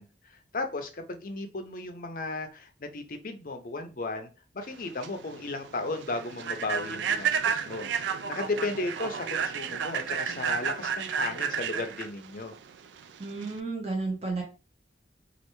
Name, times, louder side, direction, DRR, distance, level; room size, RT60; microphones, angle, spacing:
voice 1, 0.0-4.3 4.5-12.5, left 2 dB, 50° left, 0.6 m, -35 dB
Human voice / Train, 4.7-13.6, right 7 dB, 80° right, 0.3 m, -32 dB
voice 2, 13.2-14.4, right 3 dB, 35° right, 0.9 m, -32 dB
3.2 x 2.5 x 3.0 m
head